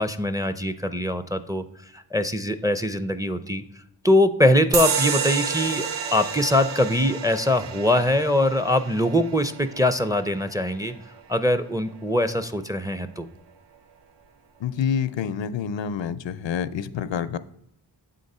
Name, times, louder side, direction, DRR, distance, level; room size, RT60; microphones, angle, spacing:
voice 1, 0.0-1.6 1.9-3.6 4.0-10.9 11.3-13.3, left 1 dB, 10° right, 0.4 m, -22 dB
sound 1, 4.7-11.8, right 7 dB, 70° right, 0.6 m, -30 dB
voice 2, 14.6-17.4, left 8 dB, 75° left, 0.5 m, -27 dB
7.6 x 3.8 x 5.4 m
wide cardioid pair, 60°, 45 cm